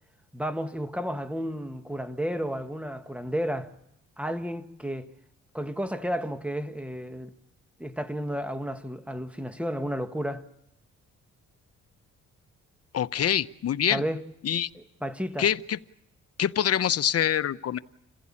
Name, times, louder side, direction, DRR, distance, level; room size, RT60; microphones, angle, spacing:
voice 1, 0.3-3.7 4.2-5.1 5.5-7.3 7.8-10.5 13.9-14.2 14.7-15.5, equal, 5° right, 1.5 m, -32 dB
voice 2, 12.9-14.0 14.4-14.7 15.4-15.8 16.4-17.8, left 9 dB, 55° left, 0.8 m, -25 dB
28.0 x 15.5 x 8.6 m
cardioid pair, 85°, 29 cm